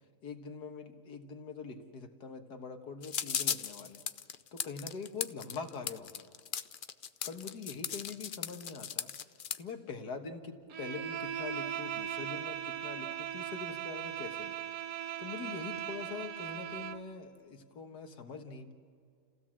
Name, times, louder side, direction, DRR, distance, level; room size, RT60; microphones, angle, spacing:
voice 1, 0.2-4.0 4.5-6.3 7.3-9.1 9.6-14.6 15.2-18.7, left 5 dB, 90° left, 5 dB, 2.1 m, -43 dB
sound 1, 3.0-9.6, left 8 dB, 65° left, 0.5 m, -37 dB
Bowed string instrument, 10.7-17.1, right 10 dB, 70° right, 1.3 m, -39 dB
29.0 x 16.0 x 7.5 m, 2.3 s
omnidirectional pair, 1.7 m